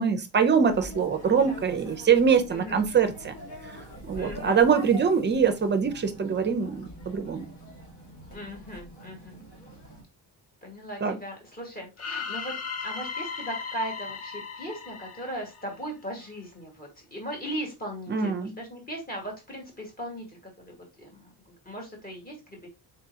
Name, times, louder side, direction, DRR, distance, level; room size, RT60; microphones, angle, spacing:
voice 1, 0.0-3.4 3.6-3.8 4.1-7.5 11.0-11.2 18.1-18.5, right 6 dB, 30° right, 0.5 m, -23 dB
sound 1, 0.6-10.0, right 1 dB, 80° left, 1.7 m, -44 dB
voice 2, 4.2-4.6 8.3-9.3 10.6-12.5 12.8-22.7, equal, 20° left, 1.6 m, -38 dB
sound 2, 12.0-16.0, left 5 dB, 40° left, 0.7 m, -36 dB
3.9 x 3.6 x 2.7 m
cardioid pair, 145°, 40 cm